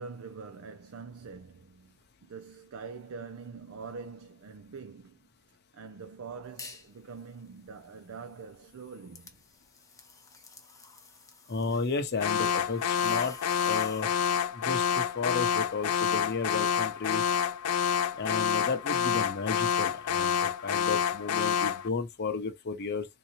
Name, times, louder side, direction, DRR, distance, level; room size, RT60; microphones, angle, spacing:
voice 1, 0.0-5.3 5.7-9.4, right 5 dB, 65° right, 0.5 m, -44 dB
sound 1, 6.6-6.9 7.3-14.2, left 4 dB, 15° left, 0.7 m, -51 dB
voice 2, 11.5-13.4 13.6-14.1 14.5-17.2 18.2-23.1, left 4 dB, 50° left, 0.7 m, -33 dB
Alarm, 12.2-21.9, left 8 dB, 90° left, 0.4 m, -28 dB
3.7 x 2.8 x 2.9 m
head